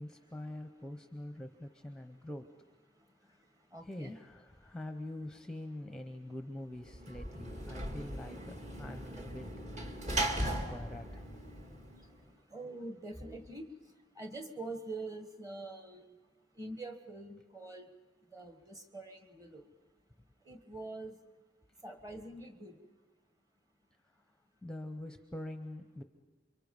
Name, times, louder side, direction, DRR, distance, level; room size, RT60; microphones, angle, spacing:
voice 1, 0.0-2.5 3.8-9.6 10.4-11.2 24.6-26.0, left 1 dB, 5° left, 6 dB, 0.8 m, -44 dB
voice 2, 3.7-4.2 12.5-13.7 14.2-16.1 16.6-17.9 18.3-19.7 20.4-21.2 21.8-22.8, right 2 dB, 20° right, 7 dB, 1.5 m, -44 dB
Sliding door / Slam, 6.8-12.2, right 1 dB, 40° right, 1.9 m, -38 dB
29.0 x 24.0 x 5.4 m, 1.3 s
head